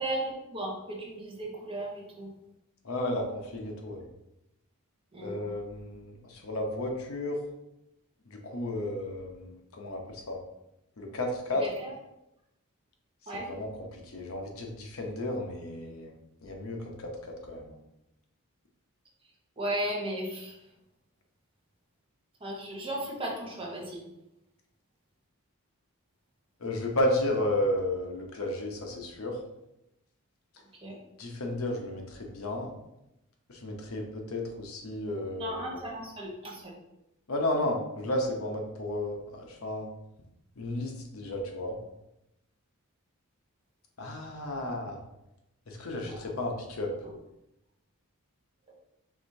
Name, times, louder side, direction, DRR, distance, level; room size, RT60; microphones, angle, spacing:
voice 1, 0.0-2.3 5.1-5.3 11.6-11.9 13.3-13.5 19.6-20.6 22.4-24.0 30.8-31.0 35.4-36.7 46.1-46.2, right 1 dB, 25° right, -2 dB, 0.9 m, -35 dB
voice 2, 2.8-4.0 5.2-7.4 8.3-10.4 11.0-11.7 13.2-16.2 16.4-17.8 26.6-29.4 31.2-32.7 33.5-35.8 37.3-39.9 40.6-41.8 44.0-45.0 45.7-46.9, left 1 dB, 70° left, 1 dB, 0.8 m, -33 dB
4.8 x 3.4 x 2.7 m, 0.88 s
head